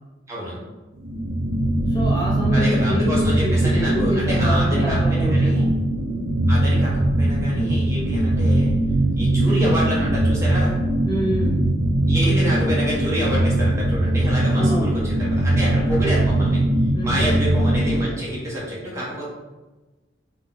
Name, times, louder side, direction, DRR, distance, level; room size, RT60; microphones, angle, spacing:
voice 1, 0.3-0.6 2.5-5.6 6.5-8.7 9.2-10.8 12.1-16.6 17.0-19.3, equal, 15° right, -6 dB, 1.2 m, -28 dB
sound 1, 1.0-18.0, right 1 dB, 65° right, 0.6 m, -20 dB
voice 2, 1.9-5.7 11.0-11.7 14.6-15.1 16.9-17.4, equal, 20° left, -5 dB, 0.6 m, -27 dB
3.9 x 3.0 x 4.0 m, 1.2 s
head